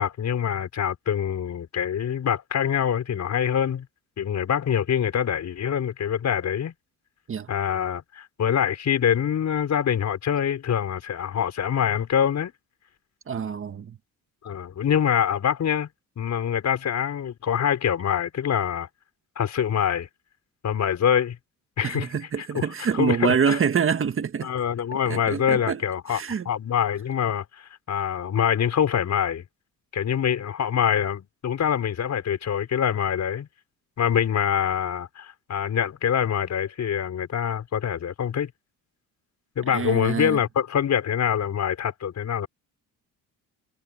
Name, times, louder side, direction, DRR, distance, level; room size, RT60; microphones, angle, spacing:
voice 1, 0.0-3.9 4.2-6.7 7.5-12.5 14.4-15.9 16.2-18.9 19.4-20.1 20.6-21.4 21.8-22.1 22.5-22.6 23.0-23.6 24.4-29.4 29.9-33.5 34.0-38.5 39.6-42.5, left 8 dB, 50° left, 6.0 m, -25 dB
voice 2, 13.3-14.0 21.8-24.5 25.0-25.8 26.1-26.5 39.7-40.4, right 6 dB, 35° right, 1.7 m, -26 dB
cardioid pair, 110°, 35 cm